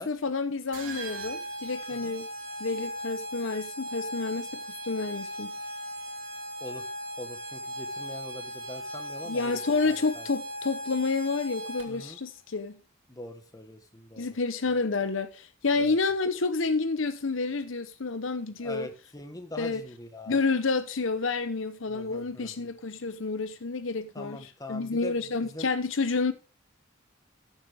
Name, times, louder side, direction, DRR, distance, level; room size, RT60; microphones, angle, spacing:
voice 1, 0.0-2.3 2.6-4.5 4.8-5.6 9.3-12.8 14.2-18.9 19.6-19.8 20.3-26.3, left 4 dB, 65° left, 0.8 m, -29 dB
sound 1, 0.7-12.1, equal, 60° right, 3.1 m, -38 dB
voice 2, 6.6-6.9 7.2-10.3 11.9-12.2 13.1-14.3 15.8-16.0 18.6-20.4 21.9-22.7 24.1-25.7, left 1 dB, 15° left, 1.3 m, -43 dB
14.0 x 7.3 x 3.5 m
head